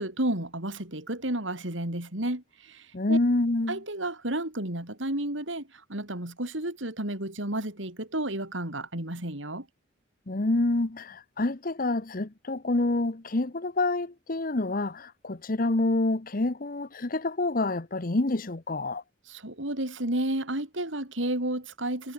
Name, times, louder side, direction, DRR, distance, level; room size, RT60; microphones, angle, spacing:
voice 1, 0.0-3.2 3.7-9.6 19.3-22.1, right 1 dB, 75° right, 5.0 m, -32 dB
voice 2, 2.9-3.8 10.3-19.0, left 2 dB, 45° left, 1.0 m, -27 dB
head